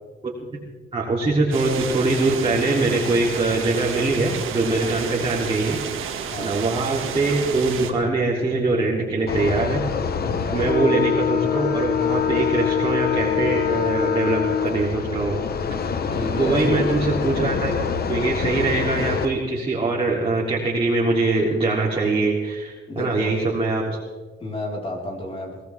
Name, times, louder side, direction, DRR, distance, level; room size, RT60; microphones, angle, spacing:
voice 1, 0.9-6.1 6.4-9.8 10.5-15.4 16.4-17.7 18.1-24.0, right 3 dB, 25° right, -4 dB, 3.1 m, -23 dB
sound 1, 1.5-7.9, right 7 dB, 85° right, 2.1 m, -31 dB
sound 2, 9.3-19.3, left 7 dB, 50° left, 1.2 m, -24 dB
voice 2, 10.2-10.6 16.1-16.7 22.9-23.3 24.4-25.6, left 1 dB, 30° left, -2 dB, 4.5 m, -31 dB
22.5 x 18.0 x 3.5 m, 1.3 s
cardioid pair, 125°, 20 cm